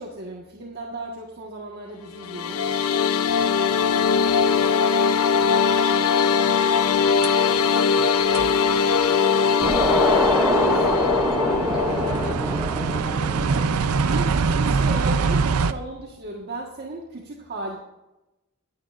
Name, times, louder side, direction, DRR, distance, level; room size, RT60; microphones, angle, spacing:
voice 1, 0.0-2.6 10.2-11.1 14.1-17.8, right 1 dB, 50° right, -2 dB, 1.5 m, -35 dB
sound 1, 2.1-12.3, left 6 dB, 85° left, 0.6 m, -21 dB
voice 2, 3.5-3.9 4.5-9.8 10.8-11.1 11.6-14.2, equal, 25° right, -3 dB, 4.7 m, -44 dB
sound 2, 4.5-4.6 7.2-7.3 8.0-8.1 8.3-15.7, right 5 dB, 90° right, 0.5 m, -25 dB
sound 3, 9.6-14.9, right 1 dB, 5° right, 0.7 m, -25 dB
20.5 x 9.1 x 2.5 m, 0.97 s
head